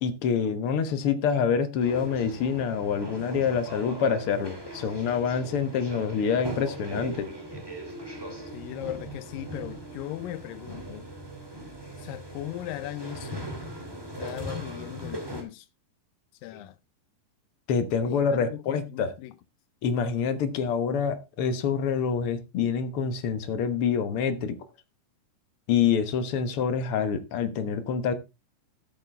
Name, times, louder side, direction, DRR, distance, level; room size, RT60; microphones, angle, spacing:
voice 1, 0.0-7.3 17.7-19.1 19.8-24.6 25.7-28.1, left 6 dB, 65° left, 1.4 m, -26 dB
sound 1, 1.8-15.4, right 1 dB, 10° right, 2.0 m, -39 dB
voice 2, 8.5-11.1 12.0-13.5 14.2-15.7 16.4-16.8 18.1-19.4, left 13 dB, 80° left, 2.5 m, -38 dB
13.0 x 8.7 x 3.4 m
omnidirectional pair, 3.9 m